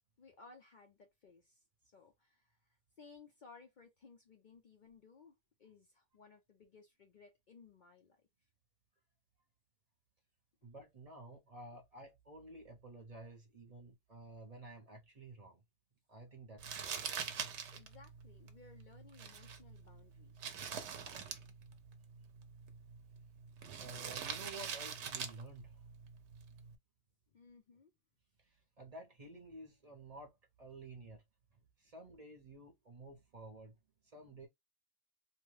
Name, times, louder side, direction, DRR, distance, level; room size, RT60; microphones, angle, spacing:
voice 1, 0.2-8.2 17.7-20.6 27.3-27.9, left 4 dB, 50° left, 0.6 m, -60 dB
voice 2, 10.6-15.6 16.1-17.0 21.0-21.1 23.8-25.8 28.4-31.2 31.8-33.8 34.1-34.5, right 2 dB, 35° right, 0.8 m, -52 dB
Crumpling crinkling, 16.6-26.7, right 7 dB, 75° right, 0.9 m, -45 dB
2.8 x 2.2 x 3.1 m
omnidirectional pair, 1.2 m